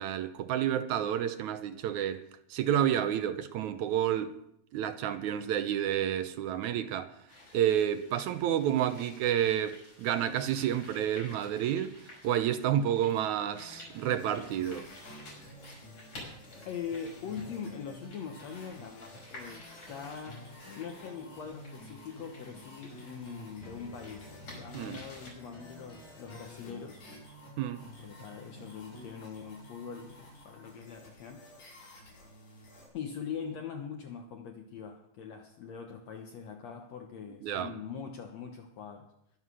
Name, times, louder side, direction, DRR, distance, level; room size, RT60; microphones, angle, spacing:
voice 1, 0.0-2.2 2.5-4.3 4.7-7.1 7.5-12.0 12.2-14.9 24.7-25.0 27.6-27.9 37.4-37.7, right 10 dB, 75° right, 2.0 m, -30 dB
sound 1, 7.3-25.3, left 2 dB, 40° left, 6.6 m, -53 dB
sound 2, 13.3-29.1, left 1 dB, 20° left, 3.2 m, -52 dB
sound 3, 14.2-32.9, left 1 dB, 80° left, 7.2 m, -53 dB
voice 2, 16.7-20.4 20.8-27.0 28.0-31.5 32.9-39.1, left 6 dB, 65° left, 2.0 m, -42 dB
21.5 x 7.5 x 6.3 m
omnidirectional pair, 3.8 m